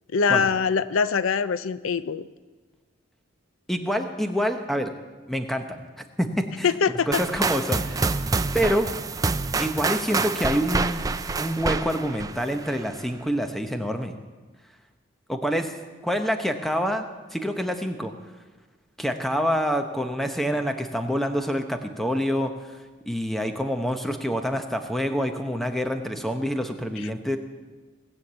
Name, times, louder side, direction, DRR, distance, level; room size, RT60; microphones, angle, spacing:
voice 1, 0.1-2.3 6.6-7.2, left 5 dB, 80° left, 14 dB, 0.5 m, -23 dB
voice 2, 3.7-4.9 5.3-5.8 6.2-6.8 7.1-8.1 8.5-8.9 9.6-11.0 11.4-14.1 15.3-15.7 16.0-17.1 17.3-18.1 19.0-22.8 23.1-27.4, equal, ahead, 6 dB, 0.8 m, -26 dB
sound 1, 7.1-13.0, right 3 dB, 15° right, 0.3 m, -27 dB
19.0 x 7.2 x 8.0 m, 1.3 s
head